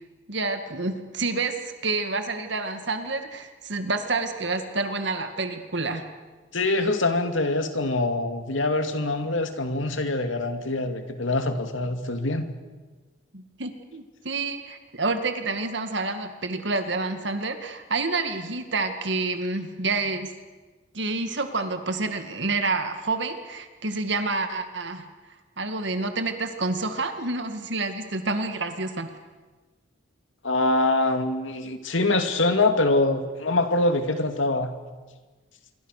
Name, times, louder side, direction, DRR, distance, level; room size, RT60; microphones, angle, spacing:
voice 1, 0.3-6.0 13.3-20.3 20.9-25.1 25.6-29.1, right 3 dB, 60° right, 7 dB, 2.1 m, -28 dB
voice 2, 6.5-12.5 30.4-34.7, left 2 dB, 80° left, 7 dB, 2.5 m, -24 dB
27.5 x 23.5 x 6.7 m, 1.3 s
head